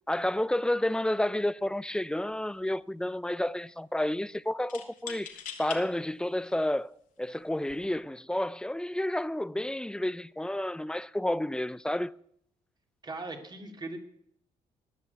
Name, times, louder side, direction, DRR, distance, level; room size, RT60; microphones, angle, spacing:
voice 1, 0.1-5.3 5.6-12.1, left 1 dB, 5° left, 0.5 m, -30 dB
sound 1, 1.6-1.8 2.1-2.8 4.7-5.8 6.5-6.6 7.5-7.9, left 8 dB, 75° left, 2.1 m, -43 dB
voice 2, 13.0-14.0, right 3 dB, 30° right, 3.0 m, -39 dB
19.5 x 6.6 x 8.2 m
cardioid pair, 75°, 14 cm